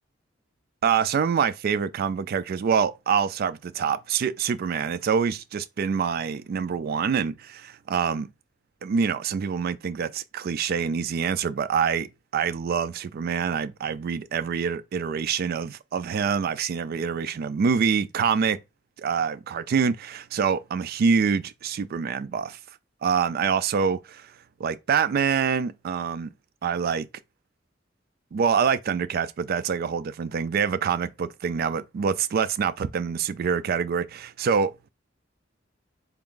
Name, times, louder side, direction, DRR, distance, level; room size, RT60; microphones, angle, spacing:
voice 1, 0.8-8.3 8.8-18.6 19.0-22.6 23.0-24.3 24.6-26.3 26.6-27.1 28.3-34.9, right 6 dB, 50° right, 0.3 m, -26 dB
3.5 x 2.5 x 3.7 m
head